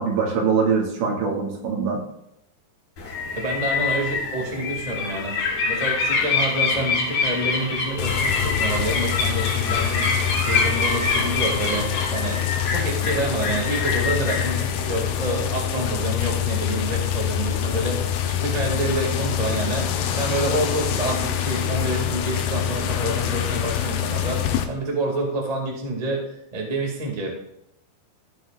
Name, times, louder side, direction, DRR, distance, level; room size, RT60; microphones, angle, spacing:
voice 1, 0.0-2.0, right 5 dB, 75° right, -1 dB, 4.3 m, -23 dB
sound 1, 3.0-15.4, left 4 dB, 50° left, 4.3 m, -26 dB
voice 2, 3.3-12.4 12.7-26.2 26.5-27.3, right 1 dB, 25° right, -1 dB, 0.8 m, -28 dB
sound 2, 8.0-24.7, left 9 dB, 75° left, 2.4 m, -25 dB
15.5 x 8.5 x 2.5 m, 0.79 s
omnidirectional pair, 5.3 m